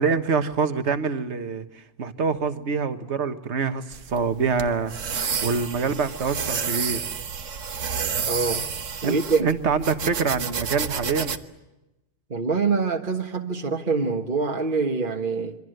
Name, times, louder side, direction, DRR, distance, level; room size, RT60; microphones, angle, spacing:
voice 1, 0.0-7.1 9.0-11.4, right 5 dB, 65° right, 1.7 m, -26 dB
sound 1, 3.9-11.4, right 6 dB, 85° right, 1.6 m, -30 dB
voice 2, 8.3-8.7 9.0-9.5 12.3-15.6, right 4 dB, 45° right, 1.6 m, -25 dB
27.0 x 24.5 x 7.9 m
omnidirectional pair, 1.3 m